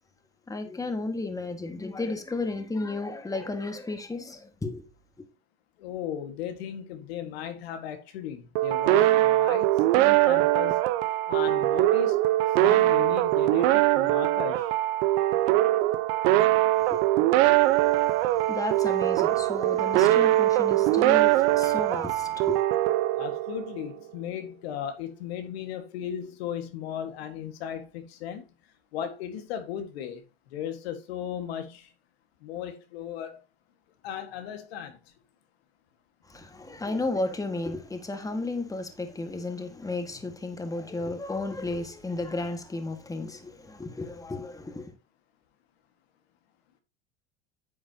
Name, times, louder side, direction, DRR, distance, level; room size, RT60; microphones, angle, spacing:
voice 1, 0.5-4.8 16.8-17.0 17.5-17.7 18.5-22.6 36.3-44.9, left 2 dB, 10° left, 1.7 m, -33 dB
voice 2, 5.8-10.8 11.3-12.2 12.6-14.7 23.2-28.5 28.9-30.2 30.5-31.9 32.4-33.4 34.0-35.0, left 9 dB, 90° left, 1.7 m, -36 dB
sound 1, 8.6-23.9, right 15 dB, 75° right, 0.9 m, -22 dB
9.5 x 7.7 x 2.8 m
supercardioid pair, 110°, 30 cm